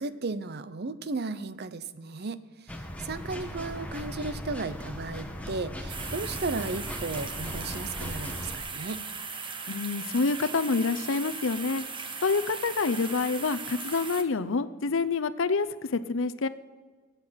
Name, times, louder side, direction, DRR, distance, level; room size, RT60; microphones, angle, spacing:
voice 1, 0.0-9.1, right 3 dB, 55° right, 14 dB, 0.7 m, -35 dB
sound 1, 2.7-8.6, left 1 dB, 5° left, 1.3 m, -38 dB
sound 2, 5.9-14.2, right 5 dB, 25° right, 1.1 m, -38 dB
voice 2, 9.7-11.8 12.2-16.5, left 4 dB, 65° left, 13 dB, 0.6 m, -27 dB
23.5 x 8.3 x 5.8 m, 1.5 s
head